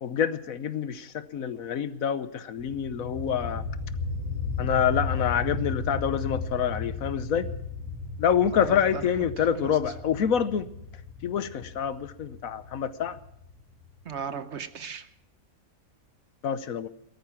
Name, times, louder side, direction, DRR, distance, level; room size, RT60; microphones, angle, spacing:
voice 1, 0.0-3.6 4.6-7.5 8.2-10.7 11.2-13.2 16.4-16.9, left 8 dB, 70° left, 1.3 m, -27 dB
sound 1, 2.6-14.1, left 3 dB, 20° right, 4.3 m, -35 dB
voice 2, 8.5-9.1 9.4-9.8 14.0-15.1, right 6 dB, 55° right, 1.0 m, -37 dB
18.5 x 13.5 x 5.8 m
omnidirectional pair, 1.5 m